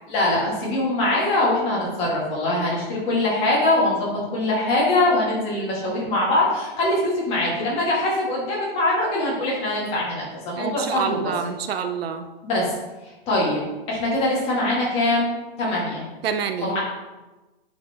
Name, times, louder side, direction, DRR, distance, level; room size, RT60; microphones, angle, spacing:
voice 1, 0.1-11.3 12.4-12.7 13.3-13.6 13.9-16.0 16.6-16.8, left 1 dB, 20° left, -5 dB, 1.8 m, -23 dB
voice 2, 10.6-12.3 16.2-16.8, right 7 dB, 70° right, 8 dB, 0.7 m, -27 dB
10.0 x 4.4 x 2.9 m, 1.1 s
hypercardioid pair, 165°, 31 cm